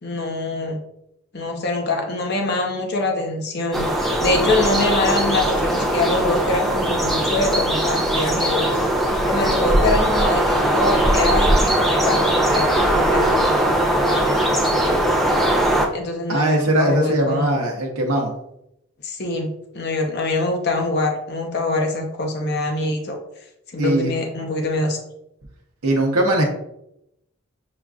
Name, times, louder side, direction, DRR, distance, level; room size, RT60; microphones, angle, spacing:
voice 1, 0.0-0.8 1.3-8.9 9.2-15.0 15.9-17.5 19.0-23.2 23.7-25.0, left 2 dB, 50° left, 2 dB, 0.7 m, -24 dB
sound 1, 3.7-15.9, right 1 dB, ahead, 0.4 m, -19 dB
voice 2, 16.3-18.3 23.8-24.1 25.8-26.4, right 1 dB, 90° right, 0 dB, 0.7 m, -20 dB
6.7 x 2.4 x 2.3 m, 0.81 s
head